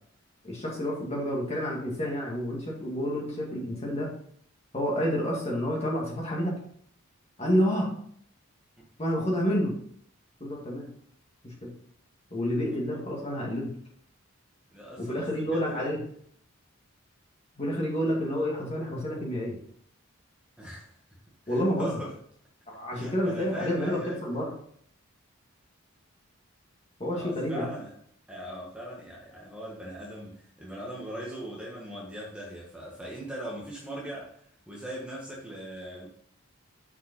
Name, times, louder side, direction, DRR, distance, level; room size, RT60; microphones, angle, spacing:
voice 1, 0.4-4.1 4.7-6.5 7.4-7.9 9.0-9.7 10.4-10.9 11.4-11.7 12.3-13.7 15.0-16.0 17.6-19.6 21.5-22.0 22.7-24.5 27.0-27.7, equal, 30° left, -3 dB, 2.3 m, -29 dB
voice 2, 14.7-15.9 20.6-21.0 21.5-22.2 22.9-24.2 27.1-27.9 28.3-34.4 34.7-36.1, right 1 dB, 5° right, -4 dB, 1.5 m, -40 dB
6.5 x 5.5 x 5.5 m, 0.62 s
head